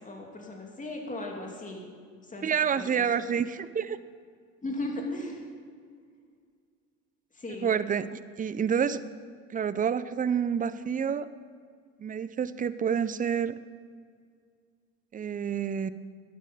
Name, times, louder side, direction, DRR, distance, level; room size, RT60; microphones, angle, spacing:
voice 1, 0.0-1.8 2.3-2.5 2.8-2.9 3.1-3.3 4.6-5.4 7.3-7.7, left 2 dB, 20° left, 0 dB, 2.7 m, -36 dB
voice 2, 2.4-4.0 7.6-9.0 9.5-11.3 12.0-13.6 15.1-15.9, right 7 dB, 25° right, 15 dB, 0.5 m, -28 dB
11.0 x 9.1 x 5.3 m, 2.1 s
supercardioid pair, 80°, 36 cm